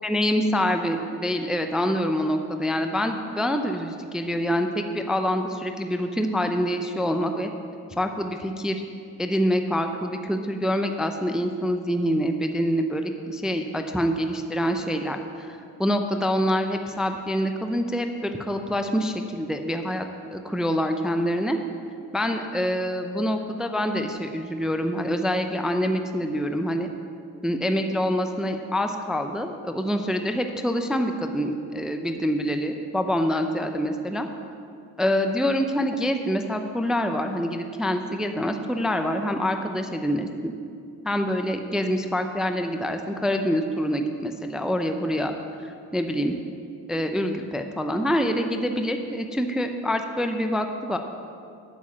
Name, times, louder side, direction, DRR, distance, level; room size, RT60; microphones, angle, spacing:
voice 1, 0.0-7.5 8.0-8.8 9.2-21.6 22.1-26.9 27.4-34.3 35.0-40.5 41.0-46.3 46.9-51.0, equal, ahead, 6 dB, 0.5 m, -26 dB
8.5 x 7.1 x 7.3 m, 2.4 s
cardioid pair, 95°, 40 cm